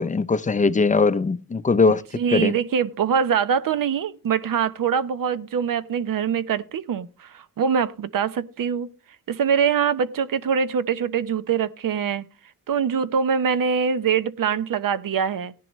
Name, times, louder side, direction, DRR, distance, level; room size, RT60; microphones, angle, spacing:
voice 1, 0.0-2.0 2.3-2.5, left 4 dB, 20° left, 0.5 m, -20 dB
voice 2, 2.1-8.9 9.3-12.2 12.7-15.5, right 7 dB, 65° right, 0.8 m, -23 dB
17.0 x 10.5 x 3.1 m
wide cardioid pair, 125°, 35 cm